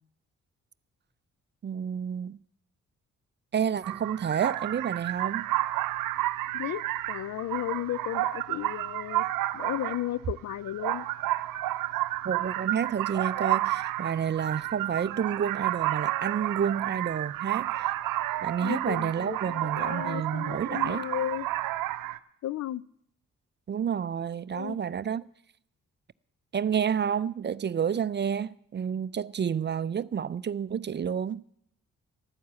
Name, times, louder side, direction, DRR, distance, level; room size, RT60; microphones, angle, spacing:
voice 1, 1.6-2.4 3.5-5.5 12.2-17.7 18.4-21.0 23.7-25.3 26.5-31.4, right 8 dB, 35° right, 0.4 m, -30 dB
sound 1, 3.8-22.2, right 16 dB, 80° right, 0.6 m, -31 dB
voice 2, 6.5-9.2 9.5-11.1 18.6-21.5 22.4-22.8 24.5-24.8, left 13 dB, 55° left, 0.4 m, -34 dB
13.0 x 9.4 x 7.5 m
hypercardioid pair, 45°, 33 cm